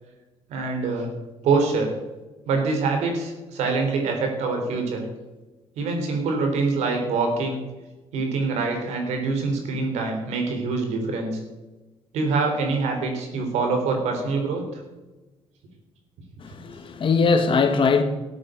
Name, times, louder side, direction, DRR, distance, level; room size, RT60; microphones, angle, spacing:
voice 1, 0.5-1.1 1.4-1.9 2.5-5.0 5.8-7.6 8.1-11.3 12.1-14.8, right 4 dB, 90° right, 3.6 m, -25 dB
voice 2, 16.4-18.0, left 4 dB, 50° left, 1.9 m, -21 dB
13.5 x 8.9 x 7.8 m
cardioid pair, 85°, 11 cm